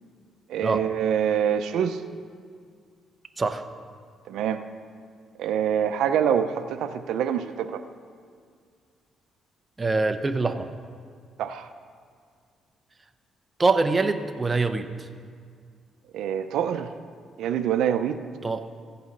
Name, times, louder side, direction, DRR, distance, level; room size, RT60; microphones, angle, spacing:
voice 1, 0.5-2.0 4.3-4.6 5.4-7.8 11.4-11.7 16.1-16.9 17.4-18.2, right 9 dB, 80° right, 9 dB, 0.5 m, -25 dB
voice 2, 9.8-10.7 13.6-14.9 18.4-18.7, right 3 dB, 25° right, 7 dB, 0.7 m, -24 dB
15.5 x 6.8 x 5.3 m, 2.1 s
cardioid pair, 90°, 0 cm